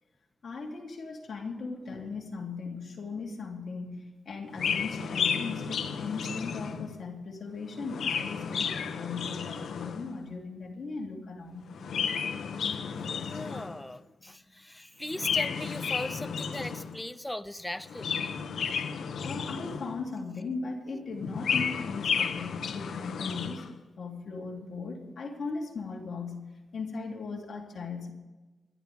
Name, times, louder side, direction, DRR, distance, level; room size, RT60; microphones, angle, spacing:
voice 1, 0.4-11.7 14.2-14.3 19.2-23.7 24.0-26.5 26.7-28.1, left 4 dB, 55° left, -1 dB, 3.3 m, -38 dB
Chirp tweet, 4.5-7.0 7.7-10.1 11.7-13.9 15.1-17.0 17.8-20.1 21.1-23.7, left 6 dB, 80° left, 1.1 m, -32 dB
voice 2, 13.1-18.4, left 1 dB, 10° left, 11 dB, 0.7 m, -39 dB
28.0 x 12.0 x 3.6 m, 1.2 s
wide cardioid pair, 130°, 0 cm